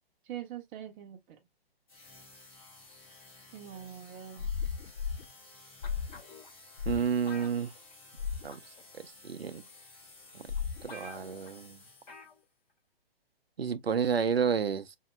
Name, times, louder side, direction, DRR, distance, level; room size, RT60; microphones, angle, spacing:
voice 1, 0.3-1.4 3.5-4.5, right 10 dB, 20° right, 0.7 m, -43 dB
sound 1, 1.9-12.4, left 3 dB, 20° left, 2.9 m, -55 dB
sound 2, 4.4-5.2 5.8-6.2 6.8-7.1 8.2-8.5 10.5-10.9, left 6 dB, 75° left, 0.5 m, -34 dB
sound 3, 5.8-6.5 7.3-8.2 8.5-8.8 9.7-9.8 10.3-10.4 10.6-10.7 10.9-11.5 12.1-12.4 12.7-12.8, left 3 dB, 45° left, 2.3 m, -49 dB
voice 2, 6.9-7.7 8.4-8.6 9.0-9.6 10.3-10.4 10.8-11.8 13.6-15.0, right 6 dB, 75° right, 0.6 m, -30 dB
5.1 x 2.8 x 2.2 m
figure-of-eight pair, 125°, 30 cm